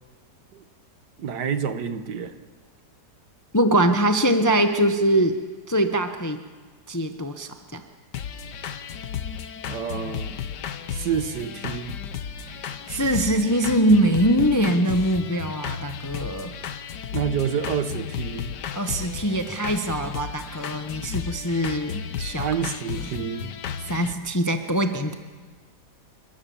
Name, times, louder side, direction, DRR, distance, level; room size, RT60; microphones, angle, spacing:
voice 1, 1.2-2.4 9.7-10.4 10.9-12.0 17.1-18.5 22.4-23.5, right 7 dB, 75° right, 10 dB, 1.7 m, -28 dB
voice 2, 3.5-5.4 5.7-6.4 6.9-7.8 12.6-16.5 18.7-22.4 23.9-25.1, right 1 dB, 15° left, 7 dB, 0.7 m, -23 dB
sound 1, 8.1-24.1, left 8 dB, 75° left, 1.6 m, -34 dB
30.0 x 13.0 x 7.1 m, 1.4 s
omnidirectional pair, 1.8 m